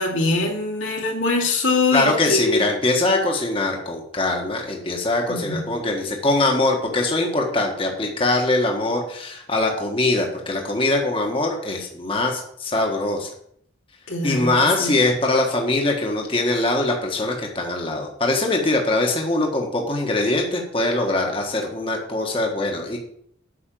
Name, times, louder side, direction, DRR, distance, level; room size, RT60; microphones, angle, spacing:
voice 1, 0.0-2.6 5.3-5.6 14.1-14.9, left 3 dB, 85° left, 0 dB, 2.6 m, -23 dB
voice 2, 1.9-13.3 14.2-23.0, left 2 dB, 25° left, 1 dB, 1.5 m, -22 dB
8.7 x 6.2 x 7.7 m, 0.68 s
head